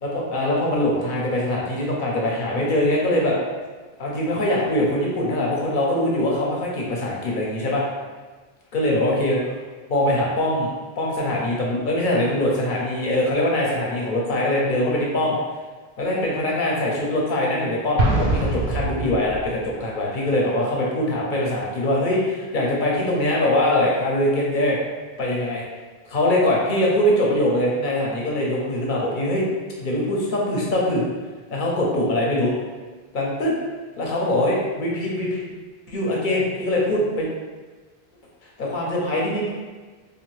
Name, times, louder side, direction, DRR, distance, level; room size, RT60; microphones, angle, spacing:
voice 1, 0.0-3.4 4.0-7.8 8.7-9.6 9.9-15.4 16.0-24.8 25.2-25.6 26.0-29.5 29.8-31.0 31.5-32.5 33.1-33.5 34.0-35.4 35.9-37.3 38.6-39.5, left 1 dB, 60° left, -3 dB, 0.7 m, -22 dB
Explosion, 18.0-19.7, right 2 dB, 80° right, 0.8 m, -23 dB
2.5 x 2.4 x 3.1 m, 1.4 s
omnidirectional pair, 1.0 m